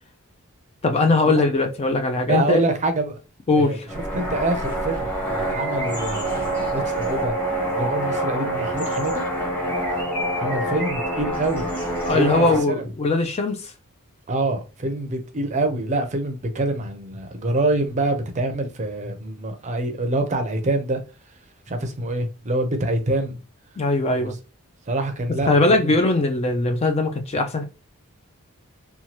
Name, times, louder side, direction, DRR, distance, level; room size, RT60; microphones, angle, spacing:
voice 1, 0.8-2.6 3.5-3.9 12.1-13.7 23.8-24.3 25.5-27.6, left 2 dB, 30° left, 0.4 m, -20 dB
voice 2, 2.3-3.2 3.5-3.8 4.1-7.3 7.8-9.2 10.3-11.7 12.1-12.9 14.3-21.0 21.7-23.4 24.1-24.3 24.9-26.0, right 2 dB, 30° right, 0.5 m, -25 dB
sound 1, 3.9-12.6, right 1 dB, 5° left, 0.9 m, -26 dB
3.0 x 2.2 x 2.8 m
head